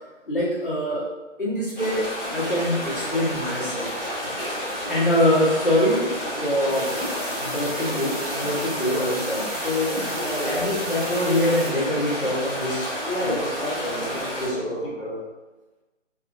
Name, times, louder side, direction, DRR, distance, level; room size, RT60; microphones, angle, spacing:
voice 1, 0.3-1.1 1.4-3.9 4.9-7.0 7.4-10.0 10.4-12.9 13.2-13.4 13.8-14.1 14.4-14.7, left 1 dB, 45° left, -8 dB, 1.0 m, -24 dB
sound 1, 1.8-14.5, equal, 15° left, 1.2 m, -30 dB
sound 2, 6.7-11.7, right 1 dB, 35° right, 1.3 m, -37 dB
voice 2, 8.8-9.1 9.9-10.8 13.0-15.2, equal, 55° right, -5 dB, 1.1 m, -32 dB
2.7 x 2.6 x 2.5 m, 1.2 s
figure-of-eight pair, 170°, 38 cm